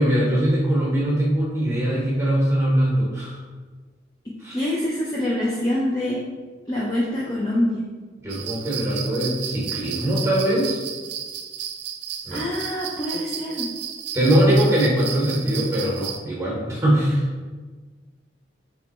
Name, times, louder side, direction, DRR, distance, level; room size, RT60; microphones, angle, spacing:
voice 1, 0.0-3.4 4.4-4.6 8.2-10.8 12.2-12.4 14.1-17.2, right 1 dB, 15° right, -5 dB, 1.0 m, -21 dB
voice 2, 4.5-6.2 6.7-7.8 12.3-13.7, left 1 dB, 20° left, -5 dB, 0.5 m, -25 dB
sound 1, 8.3-16.2, right 8 dB, 65° right, 0.4 m, -33 dB
3.3 x 3.0 x 4.1 m, 1.4 s
head